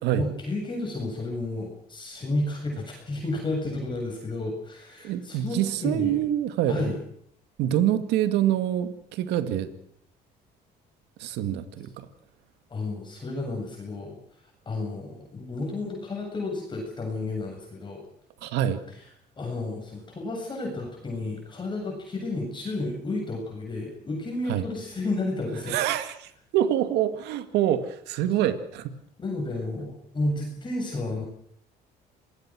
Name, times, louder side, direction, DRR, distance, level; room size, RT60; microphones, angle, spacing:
voice 1, 0.1-6.2 6.7-7.0 12.7-14.2 14.7-18.0 19.4-25.8 29.2-31.2, left 2 dB, 25° left, 0 dB, 7.8 m, -31 dB
voice 2, 5.0-6.9 7.6-9.7 11.2-12.1 18.4-18.8 24.5-24.6 25.7-28.9, right 11 dB, 90° right, 10 dB, 2.2 m, -26 dB
27.0 x 20.5 x 6.3 m, 0.68 s
cardioid pair, 110°, 17 cm